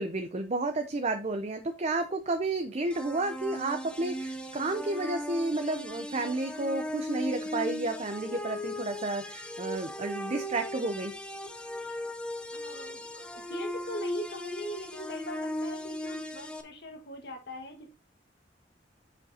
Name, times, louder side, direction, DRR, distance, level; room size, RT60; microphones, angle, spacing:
voice 1, 0.0-11.1, right 2 dB, 40° right, 7 dB, 0.6 m, -31 dB
sound 1, 2.9-16.6, equal, 5° left, 0.6 m, -37 dB
voice 2, 12.5-17.9, equal, 65° left, 2 dB, 1.7 m, -41 dB
7.4 x 6.5 x 2.8 m, 0.27 s
head